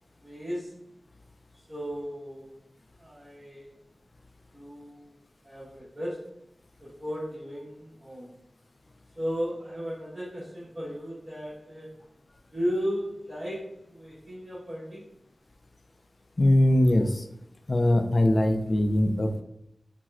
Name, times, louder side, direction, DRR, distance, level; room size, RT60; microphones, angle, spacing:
voice 1, 0.2-0.7 1.5-2.5 3.0-3.7 4.5-5.1 5.4-6.3 6.8-8.3 9.1-12.0 12.5-15.1, equal, 45° right, -12 dB, 1.4 m, -35 dB
voice 2, 16.4-17.3 17.7-19.4, left 1 dB, 55° left, 5 dB, 0.4 m, -22 dB
4.1 x 2.2 x 2.4 m, 0.79 s
cardioid pair, 40°, 0 cm